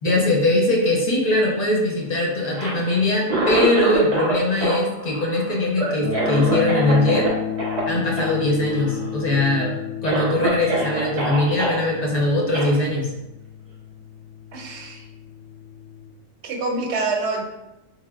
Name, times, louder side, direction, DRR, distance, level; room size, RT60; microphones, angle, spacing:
voice 1, 0.0-7.3 7.9-9.7 10.0-13.1, left 2 dB, 40° left, -3 dB, 0.6 m, -21 dB
Cough, 2.4-4.3 4.6-7.3 7.6-7.8 8.2-8.3 8.6-9.1 9.6-9.7 10.0-11.8 12.5-12.7, right 2 dB, 35° right, 0.6 m, -25 dB
sound 1, 6.0-16.1, left 10 dB, 90° left, 1.1 m, -32 dB
voice 2, 14.5-15.1 16.4-17.4, right 3 dB, 65° right, 2 dB, 0.8 m, -26 dB
3.5 x 3.3 x 2.3 m, 0.98 s
omnidirectional pair, 1.4 m